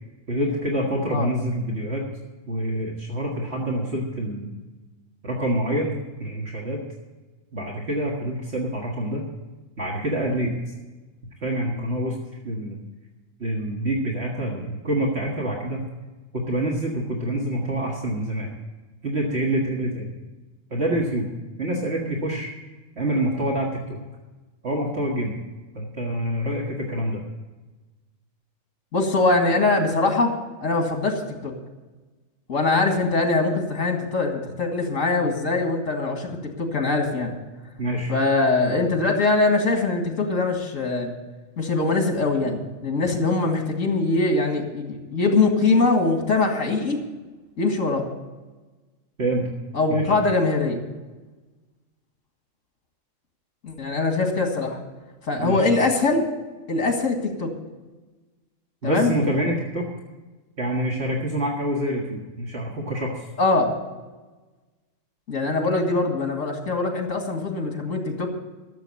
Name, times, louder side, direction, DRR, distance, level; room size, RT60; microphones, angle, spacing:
voice 1, 0.3-2.1 2.5-4.5 5.2-6.8 7.5-9.2 9.8-10.5 11.4-12.2 12.4-12.8 13.4-15.9 16.3-18.5 19.0-20.1 20.7-21.3 21.6-22.5 23.0-24.0 24.6-25.4 25.7-27.2 37.8-38.1 49.2-49.5 49.9-50.1 55.4-55.7 58.8-59.9 60.6-63.3, right 1 dB, 55° right, -2 dB, 2.0 m, -26 dB
voice 2, 28.9-30.3 30.6-31.5 32.5-37.3 38.1-41.1 41.6-47.0 47.6-48.0 49.7-50.8 53.6-54.8 55.3-56.2 56.7-57.5 58.8-59.1 63.4-63.7 65.3-68.3, left 3 dB, 75° left, 3 dB, 2.3 m, -22 dB
13.5 x 7.3 x 8.4 m, 1.2 s
omnidirectional pair, 1.3 m